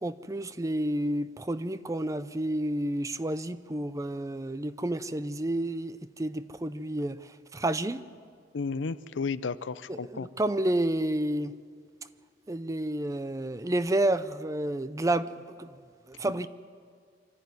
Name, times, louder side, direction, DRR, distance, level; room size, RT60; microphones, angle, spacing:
voice 1, 0.0-8.0 9.9-11.5 12.5-15.7 16.1-16.5, right 1 dB, 20° right, 0.5 m, -30 dB
voice 2, 8.5-10.3 16.2-16.3, left 4 dB, 85° left, 0.6 m, -33 dB
24.5 x 13.5 x 9.4 m
head